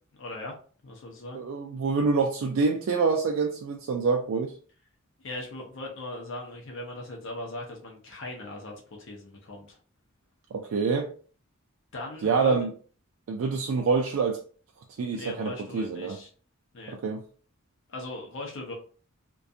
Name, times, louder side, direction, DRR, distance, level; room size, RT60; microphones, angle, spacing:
voice 1, 0.2-0.6 0.8-1.4 5.2-9.8 11.9-12.6 15.1-16.3 16.7-17.0 17.9-18.7, left 2 dB, 65° left, 0.6 m, -39 dB
voice 2, 1.3-4.5 10.5-11.1 12.2-12.7 13.3-14.4 15.0-16.2 16.9-17.2, right 4 dB, 70° right, 0.3 m, -26 dB
2.4 x 2.2 x 2.6 m
head